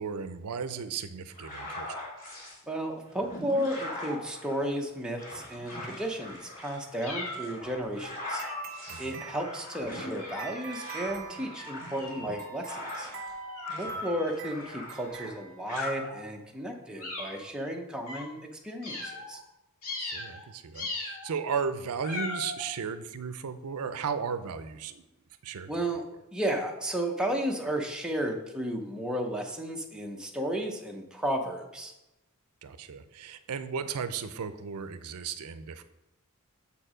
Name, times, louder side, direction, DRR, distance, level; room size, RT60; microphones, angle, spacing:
voice 1, 0.0-2.0 8.9-9.2 13.7-14.0 19.9-25.0 25.4-25.7 32.6-35.8, right 6 dB, 80° right, 11 dB, 0.5 m, -35 dB
sound 1, 1.3-2.6 3.1-13.3 13.6-15.4 15.7-15.9, left 1 dB, 40° left, 2.7 m, -42 dB
voice 2, 2.7-8.4 9.0-13.1 13.8-18.4 18.6-19.4 25.7-26.0 26.3-31.9, right 1 dB, 5° right, 1 dB, 0.7 m, -33 dB
sound 2, 7.0-7.7 8.3-8.8 9.4-9.7 10.2-10.9 11.5-15.0 15.7-16.2 17.0-17.5 18.1-18.3 18.8-19.4 19.8-20.4 20.7-21.3 22.0-22.6, left 2 dB, 85° left, 1.9 m, -39 dB
sound 3, 8.4-16.1, right 9 dB, 40° right, 0.8 m, -46 dB
6.9 x 4.5 x 5.0 m, 0.95 s
head